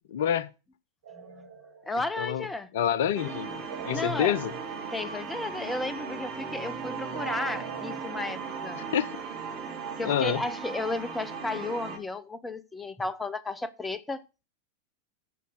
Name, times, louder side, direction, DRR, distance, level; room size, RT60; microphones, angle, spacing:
voice 1, 0.1-0.5 2.2-2.5 2.7-3.6 3.8-4.5 8.8-9.2 10.0-10.4, left 9 dB, 55° left, 0.6 m, -27 dB
sound 1, 1.0-2.4 3.7-5.9 7.1-9.3, right 6 dB, 60° right, 1.2 m, -45 dB
voice 2, 1.1-1.5 1.9-2.7 3.9-4.3 4.9-8.8 10.0-14.5, left 2 dB, 10° left, 0.7 m, -33 dB
sound 2, 3.1-12.0, right 6 dB, 40° right, 2.0 m, -37 dB
9.3 x 5.2 x 6.6 m
figure-of-eight pair, 90°, 0 cm